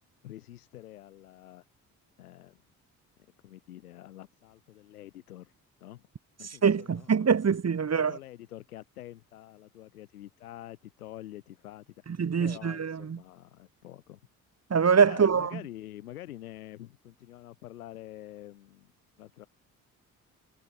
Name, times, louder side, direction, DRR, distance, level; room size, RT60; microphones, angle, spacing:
voice 1, 0.2-1.6 2.2-2.6 3.4-5.5 5.8-6.1 6.4-7.3 7.8-11.9 12.4-14.2 15.1-18.9 19.2-19.5, left 14 dB, 85° left, 5.1 m, -47 dB
voice 2, 6.6-8.2 12.2-13.2 14.7-15.5, right 6 dB, 35° right, 2.2 m, -24 dB
figure-of-eight pair, 45°, 43 cm